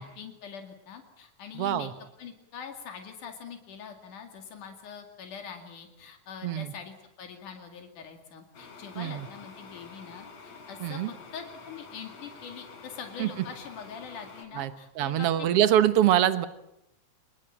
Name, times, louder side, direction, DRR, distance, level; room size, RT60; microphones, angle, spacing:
voice 1, 0.0-1.9 2.2-11.0 11.3-15.5, left 7 dB, 85° left, 4 dB, 3.8 m, -43 dB
voice 2, 1.5-1.9 6.4-6.7 9.0-9.3 10.8-11.1 13.2-13.3 14.6-16.5, right 11 dB, 60° right, 12 dB, 1.9 m, -24 dB
sound 1, 8.5-14.5, left 4 dB, 60° left, 4.4 m, -48 dB
27.5 x 20.5 x 8.8 m, 0.82 s
omnidirectional pair, 3.5 m